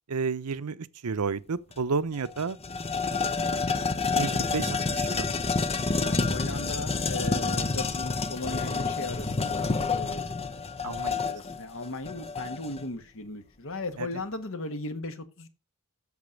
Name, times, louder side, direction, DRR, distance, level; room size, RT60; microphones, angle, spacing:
voice 1, 0.1-2.6 4.2-5.3 10.8-11.2 14.0-14.1, right 5 dB, 85° right, 0.7 m, -31 dB
sound 1, 1.7-1.8 2.1-12.8, left 4 dB, 25° left, 0.7 m, -29 dB
voice 2, 6.0-10.5 10.8-10.9 11.3-15.5, left 2 dB, 60° left, 1.4 m, -37 dB
8.4 x 6.8 x 6.4 m
head